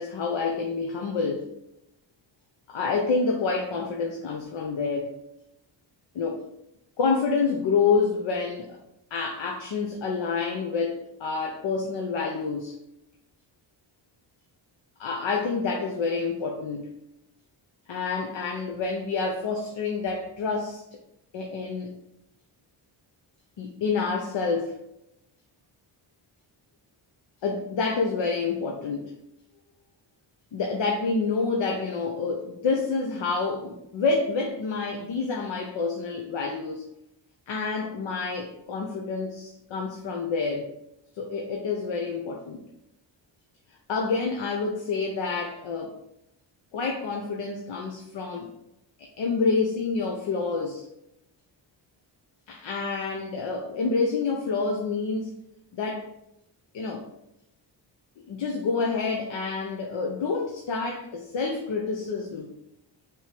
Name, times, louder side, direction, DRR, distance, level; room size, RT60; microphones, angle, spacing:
voice 1, 0.0-1.5 2.7-5.1 6.1-6.4 7.0-8.8 9.1-12.8 15.0-16.9 17.9-20.8 21.3-21.9 23.6-24.8 27.4-29.1 30.5-36.8 37.5-40.7 41.1-42.6 43.9-45.9 46.7-48.5 49.0-50.8 52.5-55.3 55.7-56.1 56.7-57.1 58.3-62.5, left 4 dB, 75° left, 2 dB, 0.9 m, -28 dB
6.5 x 3.1 x 5.0 m, 0.85 s
cardioid pair, 80°, 46 cm